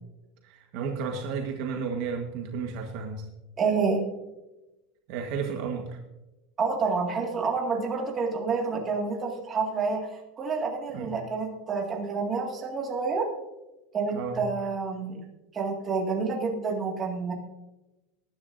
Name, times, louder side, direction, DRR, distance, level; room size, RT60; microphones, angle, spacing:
voice 1, 0.4-3.3 5.1-6.0 10.9-11.1 14.1-14.4, right 5 dB, 45° right, 2 dB, 1.3 m, -32 dB
voice 2, 3.6-4.0 6.6-13.3 13.9-15.2 15.5-17.3, right 4 dB, 20° right, 0 dB, 2.0 m, -28 dB
19.0 x 10.5 x 2.6 m, 1.0 s
supercardioid pair, 175°, 0 cm